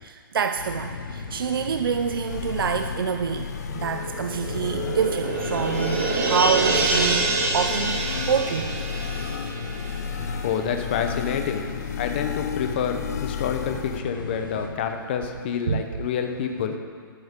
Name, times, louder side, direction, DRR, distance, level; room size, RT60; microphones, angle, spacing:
voice 1, 0.0-3.5 3.7-7.3 7.5-8.8 9.9-10.4 15.7-15.8, right 7 dB, 70° right, 7 dB, 0.6 m, -27 dB
sound 1, 0.6-14.7, left 4 dB, 65° left, 1.8 m, -36 dB
sound 2, 2.3-14.0, left 8 dB, 45° left, 0.4 m, -34 dB
sound 3, 3.8-10.8 11.1-11.2, right 3 dB, 35° right, 1.3 m, -27 dB
voice 2, 10.2-16.8, left 7 dB, 25° left, 6 dB, 0.8 m, -28 dB
19.0 x 9.6 x 3.7 m, 2.1 s
hypercardioid pair, 175°, 12 cm